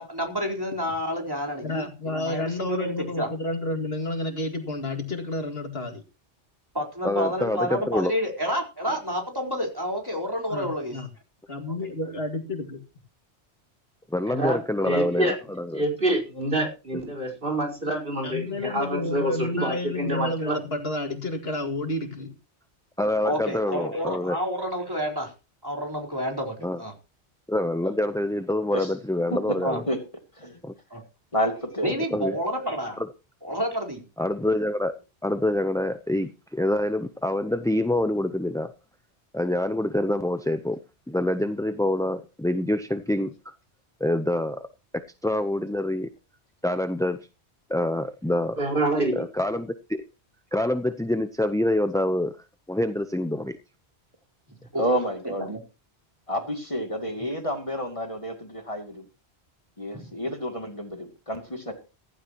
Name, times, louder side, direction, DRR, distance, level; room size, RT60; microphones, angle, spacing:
voice 1, 0.0-3.3 6.7-10.9 23.2-25.3 25.6-26.9 29.6-29.8 30.9-31.0 31.8-33.0 33.4-34.0 54.7-54.8 55.5-55.6 59.9-60.1, equal, 20° right, 4.3 m, -29 dB
voice 2, 1.6-6.0 10.5-11.1 11.5-12.8 18.2-22.3, left 2 dB, 65° left, 2.4 m, -30 dB
voice 3, 7.0-8.1 14.1-15.8 23.0-24.4 26.6-26.8 27.5-29.8 30.6-30.7 32.1-32.4 33.0-33.1 34.2-34.9 35.2-38.7 39.3-40.8 41.1-43.3 44.0-44.7 45.2-46.1 46.6-47.2 47.7-48.6 49.1-50.0 50.5-52.4 52.7-53.6, left 1 dB, 5° left, 0.5 m, -26 dB
voice 4, 14.3-14.6 14.8-15.4 15.7-20.6 48.6-49.2, right 1 dB, 55° right, 4.9 m, -26 dB
voice 5, 31.3-31.9 54.8-55.5 56.3-59.0 59.8-61.7, equal, 30° left, 2.6 m, -29 dB
15.0 x 15.0 x 3.0 m
omnidirectional pair, 1.1 m